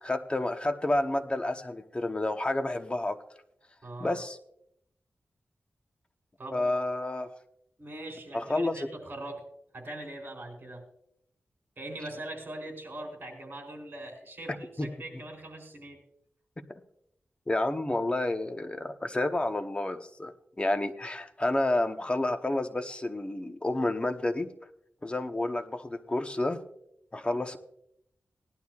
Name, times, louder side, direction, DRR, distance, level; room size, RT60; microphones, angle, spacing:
voice 1, 0.0-3.2 4.0-4.4 6.5-7.3 8.3-8.8 14.8-14.9 17.5-24.5 25.0-26.6 27.1-27.6, left 2 dB, 25° left, 6 dB, 1.0 m, -30 dB
voice 2, 3.8-4.2 6.4-6.8 7.8-9.4 9.7-10.8 11.8-16.0, right 1 dB, 45° right, 2 dB, 4.1 m, -41 dB
18.5 x 11.5 x 2.4 m, 0.74 s
wide cardioid pair, 90°, 4 cm